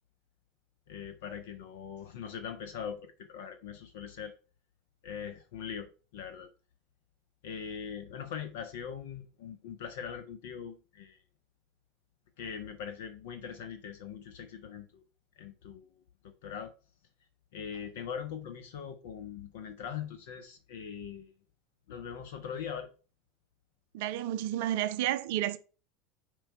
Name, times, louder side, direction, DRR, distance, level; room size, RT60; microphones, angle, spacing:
voice 1, 0.9-4.3 5.0-6.5 7.4-11.2 12.4-15.0 15.4-15.9 16.2-16.7 17.5-21.3 21.9-22.9, left 7 dB, 65° left, 0.7 m, -41 dB
voice 2, 23.9-25.6, right 12 dB, 60° right, 0.5 m, -31 dB
4.6 x 4.5 x 5.4 m
figure-of-eight pair, 75°, 0 cm